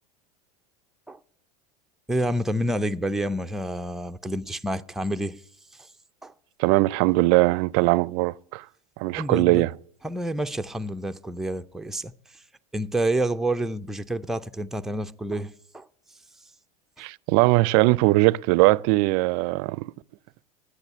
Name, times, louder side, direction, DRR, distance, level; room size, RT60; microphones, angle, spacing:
voice 1, 2.1-5.4 5.8-5.9 6.2-6.3 9.2-9.7 10.0-12.1 12.7-15.9, right 1 dB, ahead, 0.4 m, -28 dB
voice 2, 6.6-8.6 9.0-9.7 17.0-19.9, right 21 dB, 60° right, 0.4 m, -20 dB
10.5 x 8.2 x 9.7 m
hypercardioid pair, 100°, 20 cm